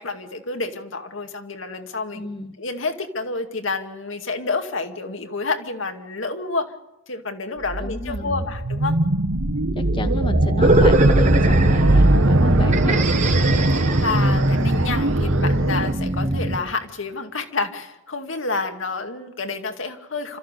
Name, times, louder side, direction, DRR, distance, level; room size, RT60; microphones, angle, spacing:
voice 1, 0.0-2.2 2.6-6.7 7.1-9.0 13.5-13.7 14.0-20.4, left 3 dB, 70° left, 6 dB, 2.2 m, -29 dB
voice 2, 2.1-2.5 7.8-8.5 9.8-13.1, left 2 dB, 25° left, 9 dB, 0.9 m, -31 dB
sound 1, 7.6-15.9, right 2 dB, 85° right, 1.4 m, -21 dB
sound 2, 10.6-16.6, right 1 dB, 35° right, 1.5 m, -20 dB
30.0 x 14.0 x 6.7 m, 0.93 s
head